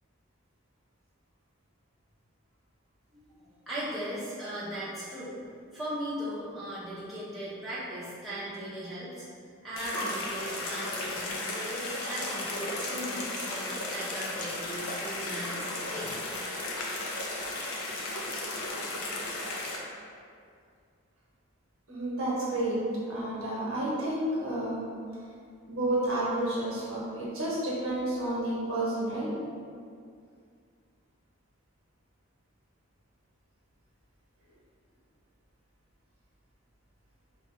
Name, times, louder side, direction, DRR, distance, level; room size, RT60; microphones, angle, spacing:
voice 1, 3.7-5.3 5.7-9.3 9.6-16.1, equal, ahead, -12 dB, 0.7 m, -38 dB
sound 1, 9.8-19.8, left 2 dB, 80° left, 0.6 m, -35 dB
voice 2, 21.9-22.8 23.1-24.8 25.7-29.3, right 1 dB, 75° right, -6 dB, 1.0 m, -30 dB
2.9 x 2.5 x 4.2 m, 2.3 s
head